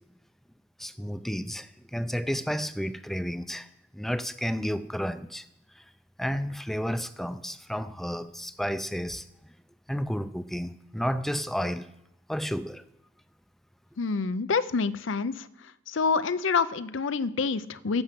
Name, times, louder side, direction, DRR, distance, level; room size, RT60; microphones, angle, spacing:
voice 1, 0.8-3.7 3.9-5.4 6.2-9.2 9.9-11.9 12.3-12.8, equal, ahead, 11 dB, 0.5 m, -31 dB
voice 2, 14.0-15.5 15.9-18.0, left 5 dB, 85° left, 14 dB, 0.6 m, -27 dB
16.0 x 6.3 x 7.5 m, 0.84 s
head